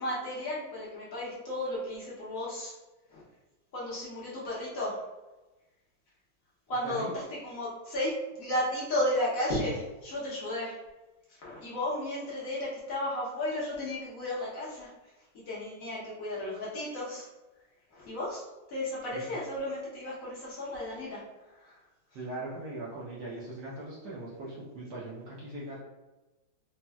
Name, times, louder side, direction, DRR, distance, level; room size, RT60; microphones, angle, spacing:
voice 1, 0.0-2.7 3.1-3.2 3.7-5.0 6.7-7.1 7.4-8.1 8.4-10.7 11.4-14.9 15.5-17.3 18.0-18.4 18.7-21.2, left 1 dB, 60° left, -7 dB, 0.9 m, -33 dB
voice 2, 6.8-7.3 19.1-19.5 22.1-25.8, right 2 dB, 70° right, -6 dB, 1.1 m, -40 dB
4.1 x 2.1 x 2.2 m, 1.1 s
omnidirectional pair, 2.1 m